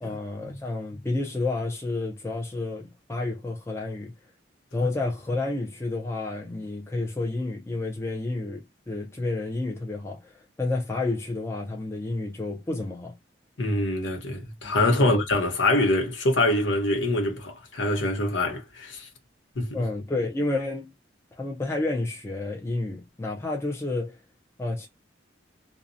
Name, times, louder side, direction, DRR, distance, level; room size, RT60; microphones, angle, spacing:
voice 1, 0.0-4.2 4.7-13.1 14.6-15.2 19.7-20.9 21.4-24.2 24.6-24.9, left 2 dB, 15° left, 0.4 m, -30 dB
voice 2, 13.6-19.1 19.6-19.8, left 2 dB, 90° left, 0.9 m, -24 dB
2.6 x 2.0 x 2.5 m
head